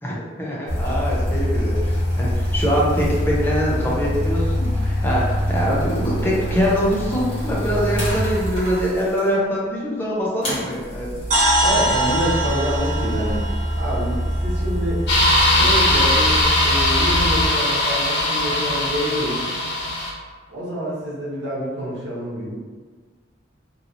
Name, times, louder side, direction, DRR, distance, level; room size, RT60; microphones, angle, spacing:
voice 1, 0.0-11.1, equal, 10° left, -6 dB, 0.6 m, -23 dB
sound 1, 0.7-9.3 10.4-17.5, equal, 35° left, 1.1 m, -24 dB
sound 2, 11.3-15.3, right 1 dB, 40° right, 0.6 m, -24 dB
voice 2, 11.6-13.5 13.8-15.1 15.5-19.5 20.5-22.6, equal, 85° right, -5 dB, 1.0 m, -27 dB
sound 3, 15.1-20.1, left 1 dB, 70° left, 1.2 m, -19 dB
2.8 x 2.8 x 2.7 m, 1.4 s
head